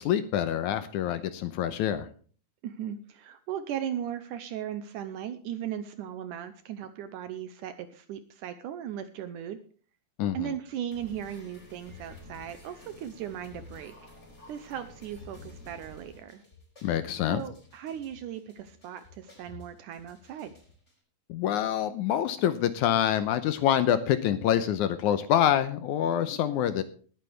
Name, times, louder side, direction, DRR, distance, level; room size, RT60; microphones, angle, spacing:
voice 1, 0.0-2.1 10.2-10.5 16.8-17.4 21.3-26.8, left 10 dB, 75° left, 11 dB, 1.8 m, -26 dB
voice 2, 2.6-9.6 10.3-13.9 14.5-16.4 17.3-20.5, right 10 dB, 75° right, 10 dB, 2.0 m, -37 dB
sound 1, 10.9-20.9, left 2 dB, 20° left, 4.4 m, -51 dB
19.5 x 9.2 x 3.4 m, 0.43 s
omnidirectional pair, 4.3 m